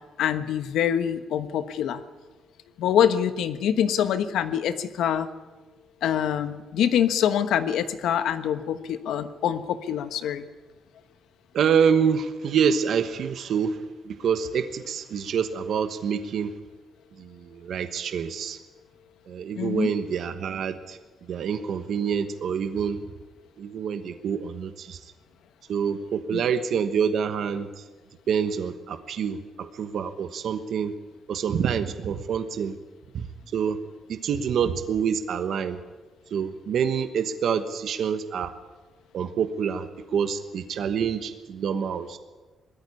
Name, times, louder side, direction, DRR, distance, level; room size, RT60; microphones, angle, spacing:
voice 1, 0.2-2.0 2.8-5.3 6.0-10.5 19.6-19.9 26.3-26.4, left 9 dB, 85° left, 10 dB, 1.3 m, -25 dB
voice 2, 11.5-13.8 14.1-16.5 17.2-18.6 19.3-21.0 21.3-23.0 23.6-25.0 25.7-27.8 28.3-30.9 31.3-32.8 33.1-33.3 33.5-33.8 34.1-35.8 36.3-38.5 39.1-42.2, right 7 dB, 60° right, 9 dB, 1.1 m, -26 dB
20.5 x 14.0 x 9.8 m, 1.3 s
cardioid pair, 150°, 0 cm